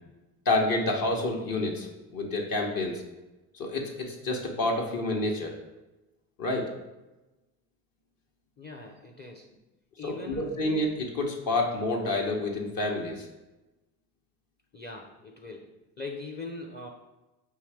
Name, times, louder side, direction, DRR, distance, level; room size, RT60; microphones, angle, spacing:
voice 1, 0.4-3.0 3.5-5.5 6.4-6.7 10.0-13.3, left 2 dB, 45° left, 0 dB, 1.0 m, -29 dB
voice 2, 8.6-9.5 10.0-10.6 14.7-16.9, left 3 dB, 20° left, 1 dB, 0.6 m, -41 dB
5.5 x 2.7 x 3.4 m, 1.0 s
hypercardioid pair, 60°, 49 cm